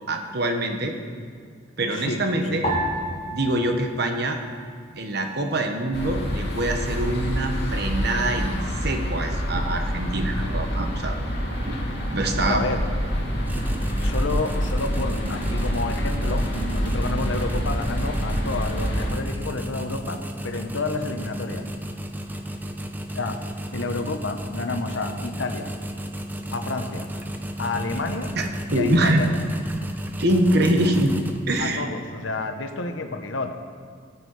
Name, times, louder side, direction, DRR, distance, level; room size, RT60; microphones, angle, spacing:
voice 1, 0.1-0.9 1.8-2.7 3.3-4.4 5.0-11.2 11.6-11.8 12.1-12.6 13.5-13.6 26.4-26.5 28.3-28.4 28.7-29.2 30.2-31.1 31.5-31.8, right 1 dB, 60° right, 4 dB, 1.3 m, -24 dB
voice 2, 1.9-2.7 12.4-12.8 14.0-21.6 23.1-23.4 23.7-25.7 26.5-27.1 27.6-28.3 28.7-29.3 31.6-33.5, left 3 dB, 90° left, 6 dB, 1.0 m, -30 dB
sound 1, 2.6-5.2 5.4-6.3 6.9-7.4, equal, 35° left, 2.3 m, -32 dB
sound 2, 5.9-19.1, equal, 60° left, 2.5 m, -27 dB
sound 3, 13.4-31.8, equal, 10° right, 0.7 m, -34 dB
15.0 x 9.7 x 4.9 m, 2.1 s
head